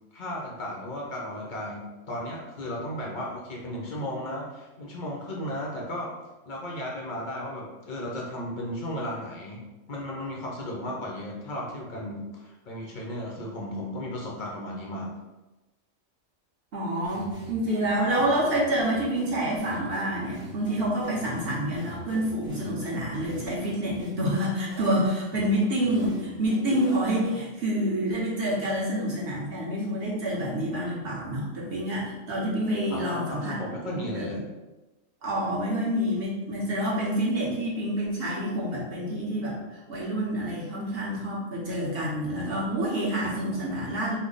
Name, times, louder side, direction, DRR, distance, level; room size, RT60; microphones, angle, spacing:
voice 1, 0.1-6.1 6.5-15.1 32.9-34.4, left 1 dB, 55° left, -2 dB, 0.5 m, -35 dB
voice 2, 16.7-33.6 33.8-34.3 35.2-44.2, right 1 dB, 50° right, -6 dB, 1.0 m, -28 dB
sound 1, 17.0-27.7, right 1 dB, 10° right, 0.6 m, -43 dB
3.3 x 2.0 x 3.8 m, 1.1 s
omnidirectional pair, 1.4 m